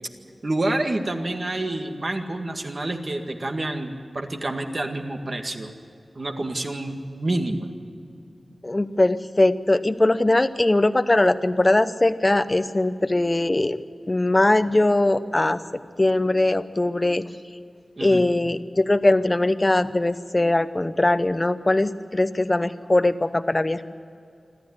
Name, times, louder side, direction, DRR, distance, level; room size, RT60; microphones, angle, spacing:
voice 1, 0.4-5.7 6.2-7.7 18.0-18.2, right 2 dB, 45° right, 4 dB, 1.9 m, -28 dB
voice 2, 8.6-13.8 14.1-15.6 16.0-17.2 18.0-23.8, left 2 dB, 25° left, 13 dB, 0.8 m, -21 dB
26.5 x 13.0 x 9.7 m, 2.4 s
wide cardioid pair, 100°, 0 cm